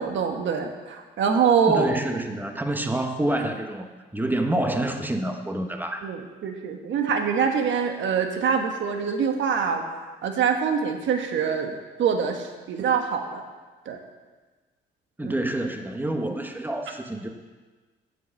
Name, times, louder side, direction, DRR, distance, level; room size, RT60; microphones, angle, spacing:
voice 1, 0.0-1.9 6.0-9.8 10.2-13.4 13.8-14.0 15.2-15.3, right 6 dB, 70° right, 5 dB, 1.3 m, -24 dB
voice 2, 1.7-6.1 15.2-17.3, right 1 dB, 10° right, 5 dB, 1.0 m, -28 dB
7.7 x 7.7 x 6.5 m, 1.3 s
cardioid pair, 90°, 20 cm